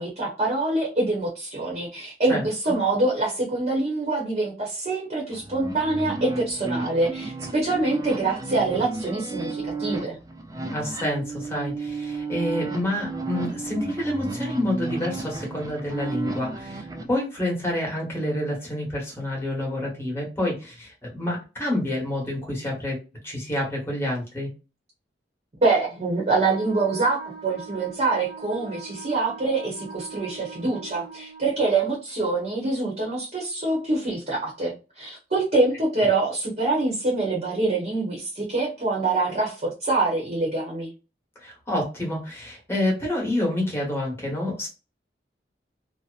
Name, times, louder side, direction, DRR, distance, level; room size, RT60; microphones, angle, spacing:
voice 1, 0.0-10.2 25.6-40.9, right 3 dB, 40° right, -2 dB, 0.8 m, -25 dB
sound 1, 5.3-17.1, right 3 dB, 20° right, 0.4 m, -33 dB
voice 2, 10.7-23.0 23.2-24.5 41.4-44.7, left 1 dB, 15° left, -2 dB, 1.1 m, -28 dB
Wind instrument woodwind instrument, 26.4-31.5, right 5 dB, 5° right, 1.0 m, -41 dB
2.7 x 2.0 x 2.4 m, 0.30 s
head